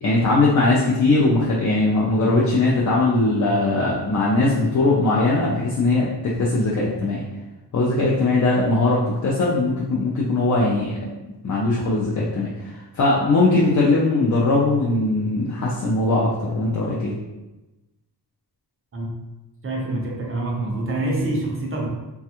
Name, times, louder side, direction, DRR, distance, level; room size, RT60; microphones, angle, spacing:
voice 1, 0.0-7.2 7.7-11.0 11.2-17.2, left 2 dB, 45° left, -5 dB, 0.4 m, -20 dB
voice 2, 19.6-21.9, right 2 dB, 30° right, -1 dB, 0.5 m, -26 dB
3.2 x 2.3 x 2.8 m, 1.0 s
wide cardioid pair, 170°, 43 cm